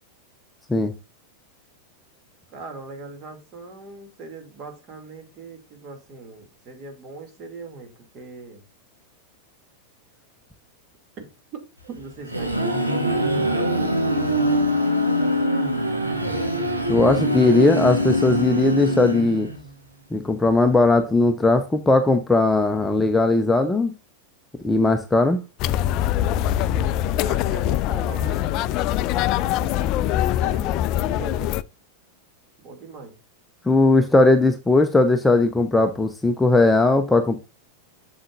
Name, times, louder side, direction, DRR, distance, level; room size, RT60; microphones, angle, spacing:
voice 1, 2.5-8.6 11.2-14.9 27.1-28.8 29.5-31.6 32.6-33.2, right 4 dB, 35° right, 2.5 m, -41 dB
sound 1, 12.0-19.7, equal, 85° right, 1.7 m, -23 dB
voice 2, 16.9-19.5 20.1-23.9 24.6-25.4 33.7-37.4, left 2 dB, 10° left, 0.7 m, -18 dB
sound 2, 25.6-31.6, left 12 dB, 40° left, 0.4 m, -23 dB
7.5 x 7.1 x 2.5 m
figure-of-eight pair, 90°, 0 cm